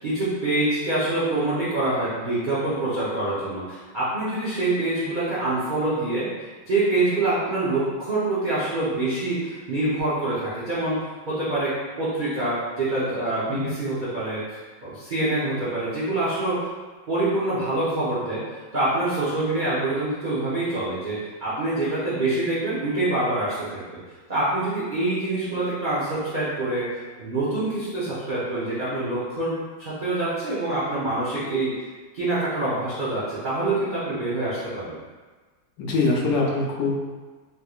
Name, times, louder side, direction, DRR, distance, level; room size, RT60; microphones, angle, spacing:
voice 1, 0.0-6.3 6.7-11.0 11.3-16.7 17.1-18.4 18.7-23.8 24.3-26.9 27.2-29.5 29.8-31.7 32.1-35.0, right 2 dB, 75° right, -11 dB, 0.4 m, -25 dB
voice 2, 35.8-36.9, left 3 dB, 75° left, -2 dB, 1.3 m, -23 dB
3.6 x 3.0 x 2.3 m, 1.3 s
omnidirectional pair, 2.0 m